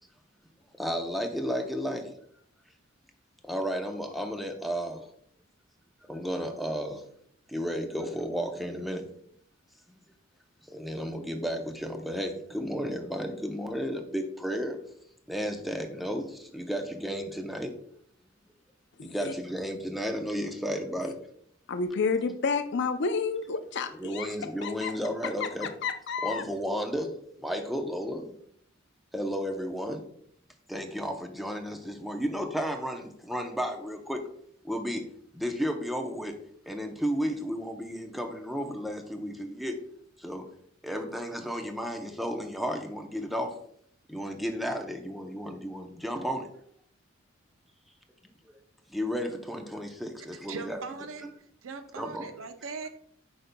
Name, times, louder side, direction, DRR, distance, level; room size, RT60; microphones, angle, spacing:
voice 1, 0.8-2.1 3.4-5.1 6.1-7.1 7.5-9.0 9.9-10.0 10.7-14.8 15.3-17.7 19.0-21.2 24.0-25.7 26.2-27.1 27.4-28.3 29.1-30.1 30.7-34.2 34.6-35.1 35.3-36.4 36.7-39.7 40.2-40.5 40.8-43.6 44.1-46.5 48.9-50.8 52.0-52.3, equal, ahead, 4 dB, 0.6 m, -33 dB
voice 2, 19.0-19.3 21.0-21.1 21.7-24.3 24.6-24.9 25.4-26.4, left 5 dB, 60° left, 9 dB, 0.5 m, -30 dB
voice 3, 50.5-51.3 51.6-52.9, right 4 dB, 90° right, 8 dB, 0.6 m, -39 dB
8.4 x 5.2 x 2.2 m, 0.66 s
head